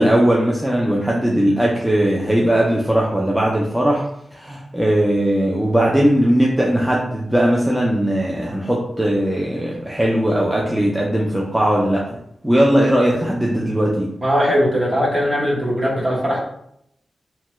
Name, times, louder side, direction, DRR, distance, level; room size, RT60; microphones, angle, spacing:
voice 1, 0.0-4.0 4.3-12.2 12.4-14.1, right 1 dB, 5° right, -3 dB, 0.4 m, -18 dB
voice 2, 14.2-16.5, equal, 35° right, -5 dB, 1.0 m, -19 dB
2.8 x 2.2 x 3.0 m, 0.74 s
wide cardioid pair, 110°, 0 cm